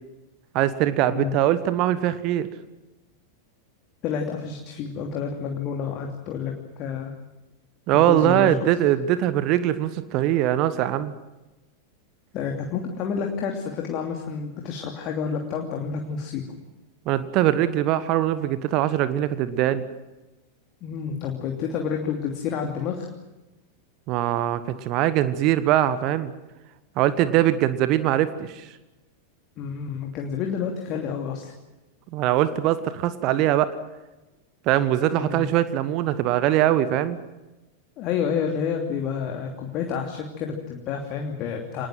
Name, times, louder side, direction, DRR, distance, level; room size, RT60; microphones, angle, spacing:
voice 1, 0.5-2.5 7.9-11.1 17.1-19.8 24.1-26.3 27.0-28.7 32.1-33.7 34.7-37.2, right 12 dB, 40° right, 14 dB, 1.3 m, -22 dB
voice 2, 4.0-6.5 6.8-7.1 7.9-8.7 12.3-16.5 20.8-23.1 29.6-31.5 35.1-35.5 38.0-41.9, left 6 dB, 35° left, 2 dB, 2.9 m, -29 dB
26.0 x 20.0 x 7.7 m, 1.1 s
figure-of-eight pair, 90°, 0 cm